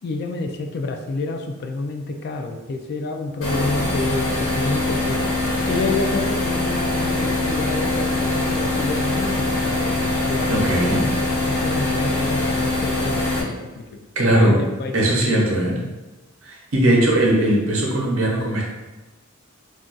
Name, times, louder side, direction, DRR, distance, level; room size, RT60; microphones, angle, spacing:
voice 1, 0.0-5.2 5.7-10.6 11.5-13.8 14.3-15.9, left 3 dB, 50° left, 4 dB, 0.3 m, -29 dB
sound 1, 3.4-13.4, left 2 dB, 70° left, 1.0 m, -23 dB
voice 2, 10.5-11.0 14.2-14.6 14.9-15.7 16.4-18.6, right 1 dB, 75° right, -2 dB, 0.8 m, -19 dB
2.5 x 2.3 x 3.8 m, 1.1 s
head